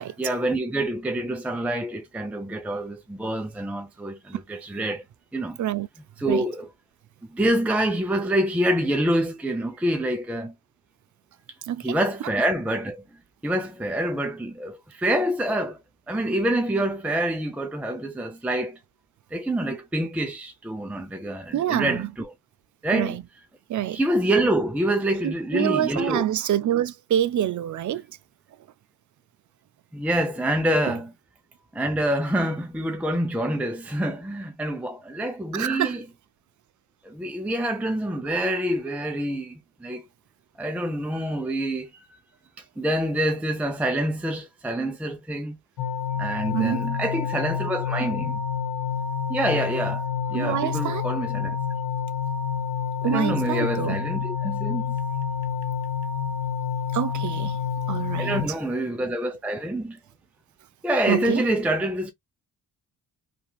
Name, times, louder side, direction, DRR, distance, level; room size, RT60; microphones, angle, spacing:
voice 1, 0.2-5.0 5.3-5.6 6.2-6.7 7.3-10.5 11.8-13.0 13.4-15.8 16.1-18.8 19.3-22.3 22.8-23.2 23.9-26.2 29.9-31.1 31.7-36.0 37.0-40.0 40.6-42.2 42.6-45.6 46.2-48.4 49.3-51.6 53.0-54.9 58.2-60.0 60.8-62.1, right 1 dB, 5° right, 0.6 m, -26 dB
voice 2, 11.7-12.0 21.5-22.1 22.9-23.2 23.7-24.0 25.2-28.1 30.8-31.0 35.5-36.0 46.5-46.9 50.3-51.1 53.0-54.0 56.9-57.6 57.9-58.4 61.1-61.5, right 11 dB, 50° right, 0.4 m, -26 dB
sound 1, 45.8-58.5, left 7 dB, 80° left, 0.7 m, -28 dB
2.8 x 2.6 x 2.3 m
cardioid pair, 70°, 40 cm